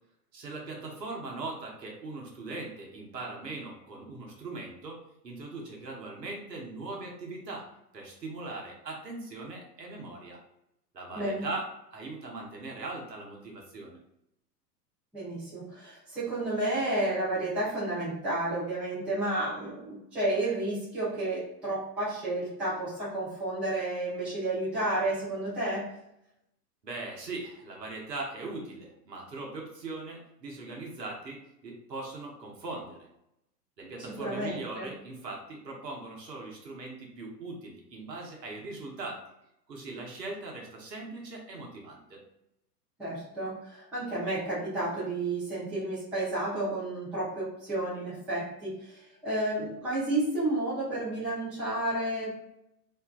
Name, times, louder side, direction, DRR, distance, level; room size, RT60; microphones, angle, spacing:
voice 1, 0.3-5.0 5.2-7.7 7.9-10.4 10.9-14.0 26.8-33.1 33.8-39.2 39.7-42.2, right 2 dB, 85° right, -1 dB, 0.9 m, -40 dB
voice 2, 11.1-11.5 15.1-25.9 34.1-34.9 43.0-52.6, right 1 dB, 5° right, -11 dB, 0.4 m, -31 dB
2.5 x 2.2 x 2.3 m, 0.81 s
figure-of-eight pair, 105°, 49 cm